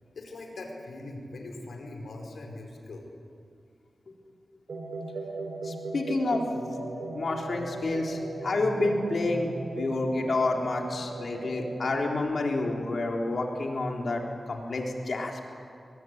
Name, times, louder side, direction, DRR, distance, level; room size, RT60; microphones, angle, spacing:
voice 1, 0.1-3.1, left 2 dB, 85° left, 2 dB, 4.7 m, -41 dB
sound 1, 4.7-12.1, right 2 dB, 75° right, 2.8 m, -37 dB
voice 2, 5.6-6.4 7.1-9.5 9.8-15.4, left 2 dB, 65° left, 0 dB, 3.9 m, -29 dB
23.0 x 20.5 x 9.6 m, 2.4 s
wide cardioid pair, 75°, 0 cm